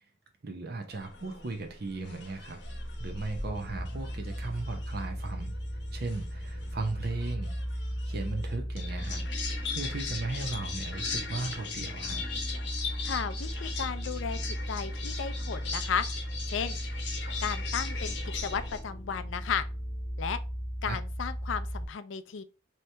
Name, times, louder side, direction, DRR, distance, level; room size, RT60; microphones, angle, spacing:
voice 1, 0.4-2.6 3.0-5.5 5.9-7.5 8.1-9.2 9.7-12.2 20.9-21.0, right 3 dB, 55° right, 0.7 m, -36 dB
sound 1, 0.9-18.8, left 5 dB, 65° left, 0.8 m, -40 dB
sound 2, 2.6-21.9, equal, 15° right, 1.6 m, -36 dB
voice 2, 13.0-16.0 16.5-16.8 17.4-19.7 20.2-20.4 20.8-22.4, left 6 dB, 90° left, 0.4 m, -34 dB
3.1 x 2.8 x 3.3 m
head